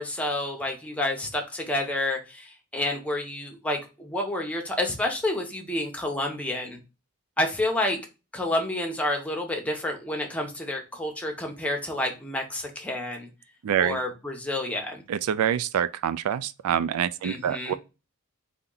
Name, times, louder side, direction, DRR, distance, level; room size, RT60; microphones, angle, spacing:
voice 1, 0.0-6.8 7.4-8.0 8.3-13.3 13.8-15.0 17.2-17.7, left 1 dB, 5° left, 0.8 m, -29 dB
voice 2, 13.6-14.0 15.1-17.7, right 9 dB, 75° right, 0.3 m, -26 dB
4.2 x 2.8 x 3.8 m
head